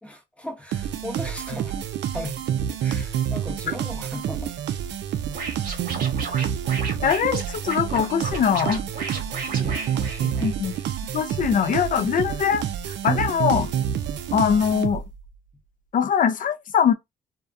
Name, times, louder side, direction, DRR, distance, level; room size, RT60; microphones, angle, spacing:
voice 1, 0.0-2.6 2.8-4.5 9.1-10.5, left 1 dB, 5° left, 0.8 m, -37 dB
sound 1, 0.7-15.3, right 9 dB, 60° right, 0.4 m, -28 dB
Scratching (performance technique), 5.3-10.8, right 4 dB, 45° right, 1.1 m, -34 dB
voice 2, 7.0-8.8 10.4-10.7 11.1-13.7 14.3-15.0 15.9-16.9, left 7 dB, 45° left, 0.4 m, -22 dB
2.2 x 2.2 x 2.5 m
cardioid pair, 90°, 20 cm